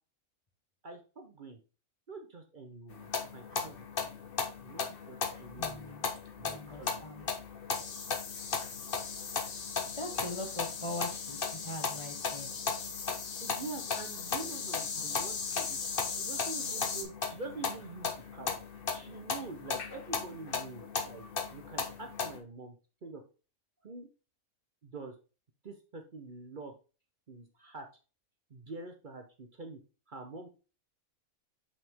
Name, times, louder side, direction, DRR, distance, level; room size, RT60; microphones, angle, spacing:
voice 1, 0.8-1.6 2.1-3.9 4.6-6.0 6.4-7.0 13.4-15.8 16.2-18.6 18.9-21.2 21.5-22.8 23.0-23.2 23.8-24.1 24.8-25.1 25.6-26.7 27.3-27.9 28.5-29.8 30.1-30.5, right 3 dB, 40° right, 4 dB, 0.9 m, -45 dB
sound 1, 2.9-22.4, left 5 dB, 45° left, 1.1 m, -37 dB
voice 2, 5.6-6.0 6.4-7.3 10.0-12.5, left 1 dB, 25° left, 2 dB, 0.8 m, -41 dB
sound 2, 7.7-17.0, left 5 dB, 80° left, 1.5 m, -39 dB
5.6 x 5.6 x 3.6 m, 0.33 s
omnidirectional pair, 1.4 m